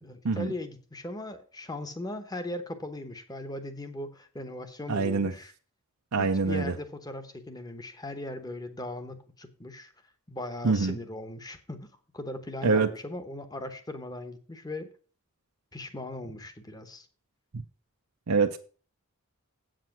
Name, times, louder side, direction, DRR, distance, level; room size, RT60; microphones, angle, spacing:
voice 1, 0.0-5.5 6.2-9.9 10.3-14.9 15.7-17.1, left 1 dB, 15° left, 1.0 m, -39 dB
voice 2, 4.9-5.3 6.1-6.7 10.6-10.9 12.6-12.9 18.3-18.6, right 4 dB, 90° right, 0.7 m, -25 dB
8.3 x 7.5 x 5.9 m
head